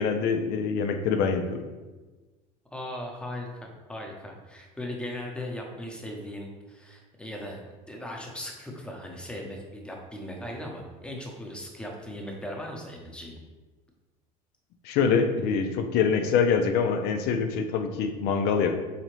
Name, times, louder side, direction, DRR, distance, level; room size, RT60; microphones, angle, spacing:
voice 1, 0.0-1.7 14.8-18.8, left 6 dB, 60° left, 6 dB, 0.5 m, -25 dB
voice 2, 2.7-7.6 7.9-13.4, left 1 dB, 5° left, 0 dB, 0.8 m, -38 dB
4.1 x 2.8 x 3.1 m, 1.2 s
supercardioid pair, 90°, 18 cm